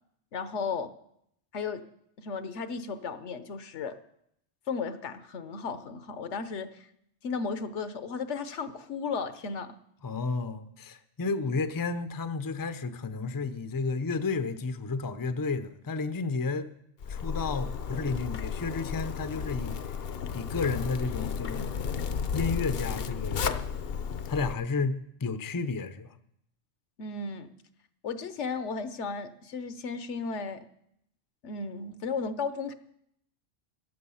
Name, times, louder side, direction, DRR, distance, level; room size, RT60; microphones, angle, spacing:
voice 1, 0.3-0.9 1.5-1.8 2.2-4.0 4.7-6.9 7.2-9.7 27.0-27.5 28.0-30.6 31.4-32.7, left 5 dB, 75° left, 1.2 m, -34 dB
voice 2, 10.0-16.7 17.1-19.8 20.3-21.8 22.3-23.5 24.3-26.1, left 4 dB, 25° left, 0.5 m, -32 dB
Zipper (clothing), 17.0-24.5, left 6 dB, 60° left, 0.8 m, -33 dB
14.5 x 10.0 x 5.6 m
omnidirectional pair, 1.2 m